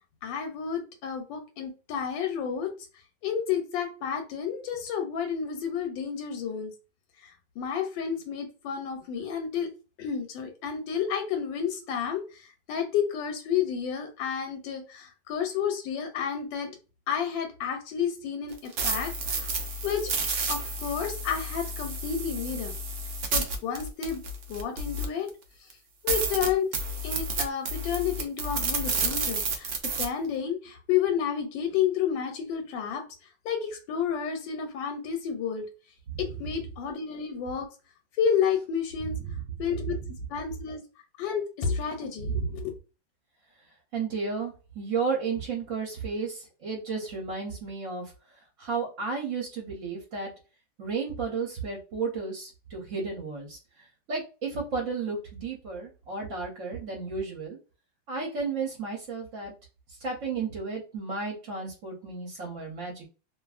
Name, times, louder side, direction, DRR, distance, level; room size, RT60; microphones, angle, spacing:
voice 1, 0.2-2.7 3.2-6.7 7.2-9.7 10.0-16.7 17.1-19.5 19.8-20.1 20.5-22.7 23.3-24.2 24.5-25.3 26.0-26.7 27.0-33.0 33.4-35.7 36.2-37.7 38.2-39.2 39.6-40.0 40.3-40.8 41.2-42.7, left 7 dB, 90° left, 5 dB, 1.3 m, -30 dB
sound 1, 18.5-25.3 25.7-25.8 26.1-30.1, right 3 dB, 85° right, 0.6 m, -30 dB
voice 2, 43.9-48.1 48.6-50.3 50.8-57.6 58.1-59.5 60.0-63.1, right 4 dB, 55° right, -1 dB, 0.9 m, -33 dB
2.6 x 2.5 x 2.3 m, 0.33 s
omnidirectional pair, 1.9 m